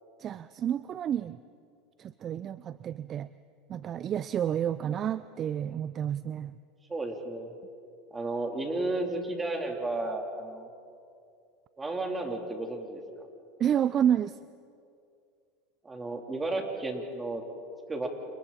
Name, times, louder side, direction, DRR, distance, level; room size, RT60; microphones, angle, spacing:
voice 1, 0.2-1.4 2.0-3.3 3.7-6.5 13.6-14.4, right 9 dB, 40° right, 16 dB, 0.5 m, -30 dB
voice 2, 6.9-7.5 8.1-10.7 11.8-13.0 15.8-17.4 17.9-18.1, right 2 dB, 15° right, 2 dB, 3.7 m, -33 dB
29.5 x 28.5 x 4.3 m, 2.4 s
hypercardioid pair, 100°, 0 cm